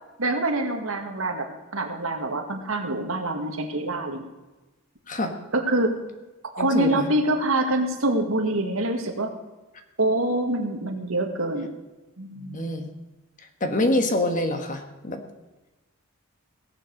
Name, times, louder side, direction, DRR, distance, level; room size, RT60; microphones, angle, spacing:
voice 1, 0.2-1.5 1.7-4.3 5.5-6.0 6.5-9.3 10.0-11.7 12.2-12.6, right 1 dB, 70° right, 4 dB, 1.9 m, -25 dB
voice 2, 6.6-7.1 12.4-12.9 13.6-15.2, left 1 dB, 40° left, 6 dB, 1.5 m, -26 dB
18.0 x 7.4 x 6.5 m, 1.1 s
head